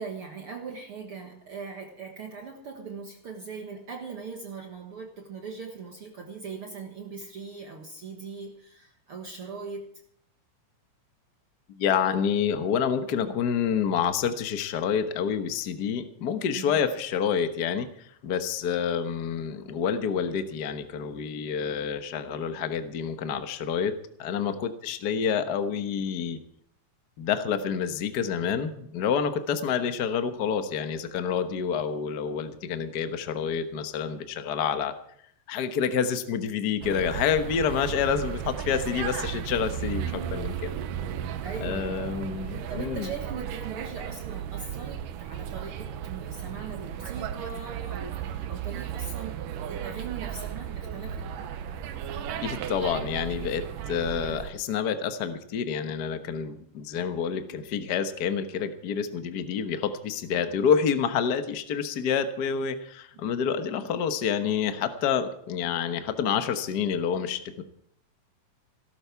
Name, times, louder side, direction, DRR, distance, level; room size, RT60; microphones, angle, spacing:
voice 1, 0.0-10.0 16.6-16.8 41.4-41.9 42.7-49.4 49.7-51.3 60.3-60.5, right 5 dB, 50° right, 2 dB, 1.9 m, -40 dB
voice 2, 11.7-17.9 18.2-23.9 24.2-26.4 27.2-34.9 35.5-40.7 41.6-43.1 52.4-67.6, left 7 dB, 80° left, 8 dB, 0.9 m, -28 dB
sound 1, 36.8-54.5, right 9 dB, 85° right, 2.6 m, -35 dB
17.5 x 13.0 x 4.7 m, 0.68 s
omnidirectional pair, 3.7 m